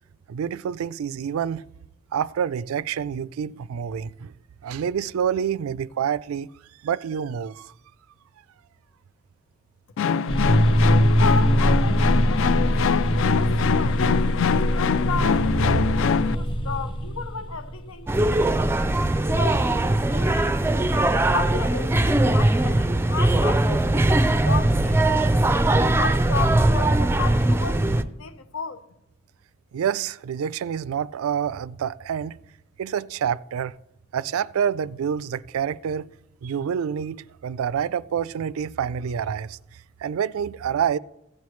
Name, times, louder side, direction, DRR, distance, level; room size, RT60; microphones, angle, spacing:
voice 1, 0.3-1.6 2.1-4.3 4.6-6.5 6.8-7.7 29.7-32.4 32.8-33.7 34.1-36.1 36.4-39.6 40.0-41.0, right 8 dB, 85° right, 0.3 m, -27 dB
sound 1, 10.0-16.4, left 6 dB, 65° left, 0.4 m, -24 dB
sound 2, 10.3-18.4, equal, 25° left, 0.8 m, -22 dB
voice 2, 11.1-14.1 14.5-18.5 19.3-20.6 21.3-25.7 26.0-27.8 28.2-28.8, left 5 dB, 85° left, 0.8 m, -34 dB
sound 3, 18.1-28.0, right 1 dB, 10° right, 0.4 m, -20 dB
15.5 x 8.6 x 3.2 m
head